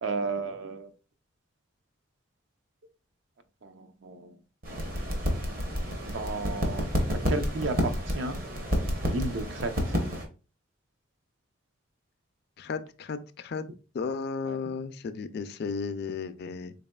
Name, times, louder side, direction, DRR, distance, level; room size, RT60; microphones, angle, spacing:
voice 1, 0.0-0.9 3.6-4.4 5.2-5.3 6.0-8.4 9.1-9.9 14.5-14.6, right 3 dB, 65° right, 0.5 m, -33 dB
sound 1, 4.6-10.2, equal, 45° right, 0.8 m, -30 dB
voice 2, 12.6-13.6 13.9-16.7, left 5 dB, 55° left, 0.3 m, -34 dB
4.0 x 3.5 x 2.2 m
head